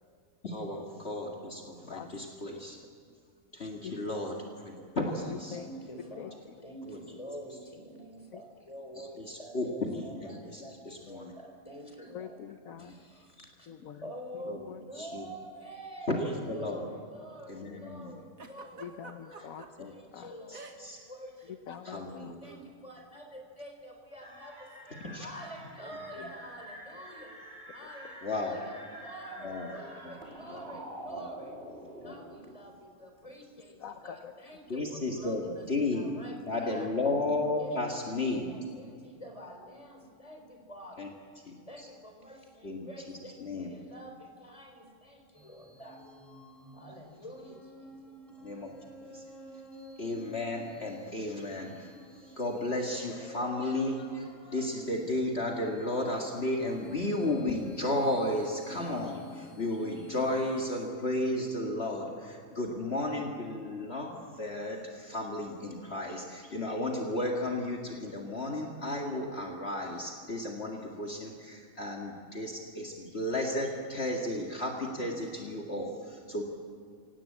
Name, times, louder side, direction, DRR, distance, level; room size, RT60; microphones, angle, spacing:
voice 1, 0.4-2.8 3.5-5.6 6.8-7.0 9.2-11.3 12.8-12.9 13.4-13.5 14.5-14.6 15.0-15.3 16.1-16.8 17.5-18.1 19.8-19.9 20.5-21.0 21.8-22.4 25.0-25.3 28.2-28.5 29.4-29.7 30.0-30.1 30.5-30.6 31.1-31.3 31.7-31.8 32.0-32.1 34.7-35.4 35.7-36.1 36.5-38.5 41.0-41.1 41.4-41.9 42.6-42.8 43.4-43.7 48.4-48.7 49.1-49.2 50.0-51.9 52.4-64.1 64.4-76.4, left 1 dB, 45° left, 0 dB, 2.3 m, -33 dB
voice 2, 3.6-4.0 5.2-5.7 6.2-6.3 8.3-8.4 12.1-12.9 13.7-14.1 14.5-14.8 18.8-20.3 21.7-22.3 33.8-34.3, left 8 dB, 70° left, 7 dB, 1.3 m, -44 dB
voice 3, 5.5-12.4 12.8-13.7 14.0-18.9 19.2-21.6 21.9-27.3 27.7-31.5 32.0-37.0 37.6-38.0 38.4-41.1 41.7-46.0 46.7-48.1, equal, 25° left, 3 dB, 3.9 m, -47 dB
Giggle, 18.4-19.7 20.5-21.0 21.3-21.5 22.4-22.7, right 4 dB, 70° right, 2.2 m, -48 dB
sound 1, 24.2-32.5, right 1 dB, 40° right, 4.0 m, -47 dB
sound 2, 45.3-60.9, left 2 dB, ahead, 3.6 m, -50 dB
25.5 x 17.5 x 8.6 m, 2.3 s
omnidirectional pair, 1.5 m